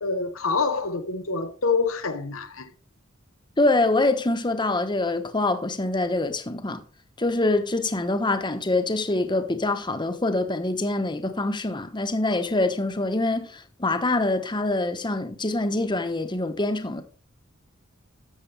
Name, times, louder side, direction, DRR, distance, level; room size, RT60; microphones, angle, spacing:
voice 1, 0.0-2.7, left 4 dB, 85° left, 1.1 m, -26 dB
voice 2, 3.6-6.8 7.2-17.0, left 2 dB, 25° left, 1.2 m, -25 dB
13.5 x 8.1 x 3.5 m
head